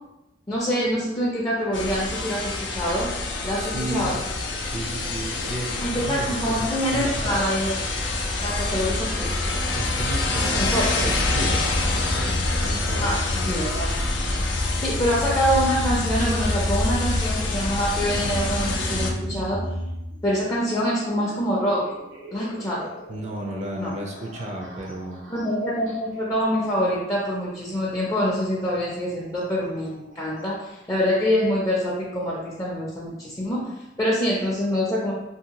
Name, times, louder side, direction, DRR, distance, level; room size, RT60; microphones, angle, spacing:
voice 1, 0.5-3.1 3.4-4.2 5.8-7.7 8.4-9.3 10.6-10.8 13.0-13.2 13.5-13.9 14.8-19.6 20.2-21.9 22.3-22.9 23.8-23.9 25.3-35.1, equal, 20° left, -7 dB, 0.5 m, -25 dB
sound 1, 1.7-19.1, left 2 dB, 85° left, 0.4 m, -26 dB
voice 2, 3.5-4.1 4.6-7.4 9.7-10.6 10.9-13.4 23.1-25.2, right 1 dB, 40° right, -1 dB, 0.4 m, -33 dB
sound 2, 18.0-30.7, right 1 dB, 90° right, 1.0 m, -38 dB
2.7 x 2.6 x 2.8 m, 0.92 s
head